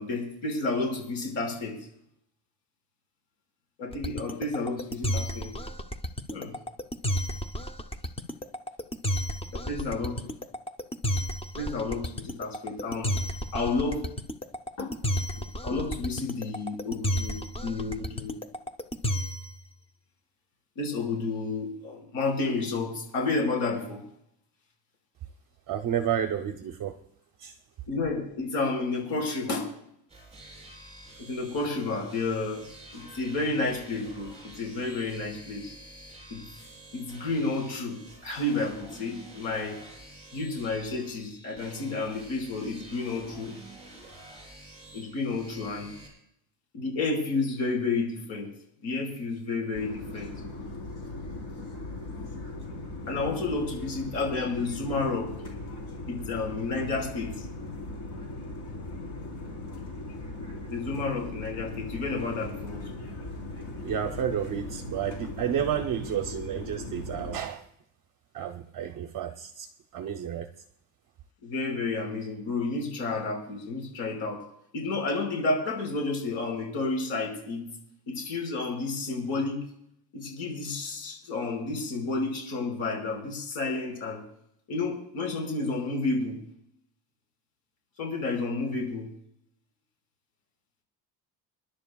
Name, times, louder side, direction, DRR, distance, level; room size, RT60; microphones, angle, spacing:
voice 1, 0.0-1.8 3.8-5.5 6.3-6.5 9.5-10.2 11.5-13.1 13.5-14.0 14.8-14.9 15.6-18.4 20.8-24.0 27.9-29.7 31.2-32.6 32.9-35.7 36.3-36.4 36.9-39.8 40.3-43.5 44.9-45.9 46.7-48.5 48.8-50.3 53.1-55.3 56.1-57.5 60.7-62.8 71.4-74.4 74.7-77.7 78.1-79.6 80.1-84.2 84.7-86.4 88.0-89.1, left 3 dB, 80° left, 1 dB, 5.3 m, -31 dB
sound 1, 3.9-19.6, equal, 15° left, 0.5 m, -31 dB
voice 2, 25.7-27.0 27.4-27.6 63.8-67.6 68.3-70.5, right 9 dB, 45° right, 6 dB, 0.7 m, -31 dB
sound 2, 30.1-46.1, right 1 dB, 15° right, 7.1 m, -49 dB
sound 3, 49.7-67.4, left 2 dB, 55° left, 3.9 m, -39 dB
29.0 x 11.0 x 2.3 m, 0.75 s
cardioid pair, 160°, 46 cm